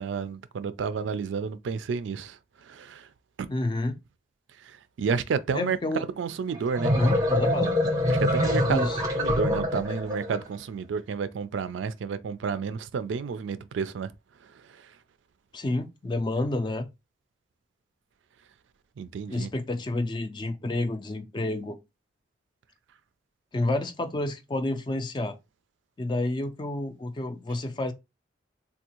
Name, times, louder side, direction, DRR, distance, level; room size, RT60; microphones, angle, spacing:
voice 1, 0.0-3.1 4.6-7.0 8.1-14.1 14.4-15.0 19.0-19.5, right 5 dB, 90° right, 0.4 m, -31 dB
voice 2, 3.5-4.0 5.5-6.0 6.9-7.7 8.7-9.0 15.5-16.9 19.3-21.8 23.5-25.4 26.0-27.9, left 2 dB, 25° left, 0.3 m, -29 dB
sound 1, 6.5-10.4, left 1 dB, 20° right, 0.6 m, -25 dB
3.5 x 2.3 x 2.9 m
head